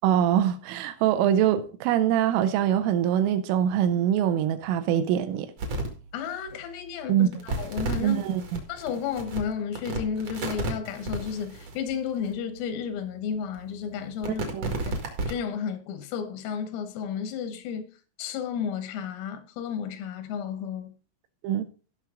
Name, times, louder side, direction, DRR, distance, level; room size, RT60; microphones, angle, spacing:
voice 1, 0.0-5.5 7.1-7.3 8.0-8.6 14.5-14.7 21.4-21.7, right 10 dB, 80° right, 3.2 m, -23 dB
sound 1, 5.6-5.9 6.5-6.6 7.2-12.3 12.9-13.0 13.5-15.4, right 3 dB, 60° right, 1.6 m, -33 dB
voice 2, 6.1-8.2 8.7-15.0 15.3-17.9 18.2-20.9, left 7 dB, 90° left, 3.9 m, -32 dB
16.5 x 6.1 x 3.7 m
omnidirectional pair, 5.9 m